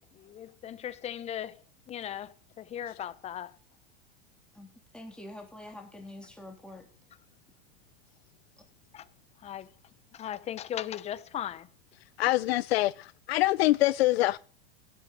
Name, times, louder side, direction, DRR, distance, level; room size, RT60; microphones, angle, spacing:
voice 1, 0.1-1.6 1.9-3.5 8.9-9.0 9.4-9.7 10.1-11.7, left 10 dB, 20° left, 0.8 m, -37 dB
voice 2, 4.9-6.8, left 1 dB, 5° left, 3.3 m, -45 dB
voice 3, 12.2-14.4, left 17 dB, 80° left, 0.6 m, -25 dB
16.5 x 8.6 x 6.5 m
supercardioid pair, 145°, 30 cm